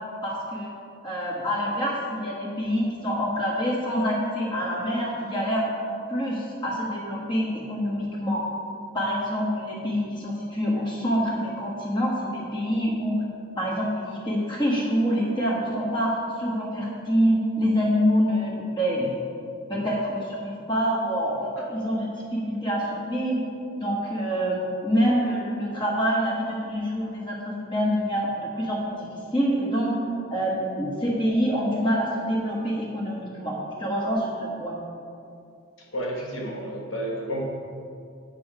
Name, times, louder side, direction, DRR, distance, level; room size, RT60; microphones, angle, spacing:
voice 1, 0.2-0.7 1.0-5.7 6.1-8.4 8.9-13.2 13.6-19.2 19.7-23.4 23.7-26.3 26.6-29.1 29.3-29.9 30.3-34.8, equal, 20° left, -3 dB, 1.4 m, -26 dB
voice 2, 35.9-37.4, equal, 70° left, -2 dB, 1.3 m, -31 dB
8.7 x 6.2 x 4.8 m, 2.5 s
head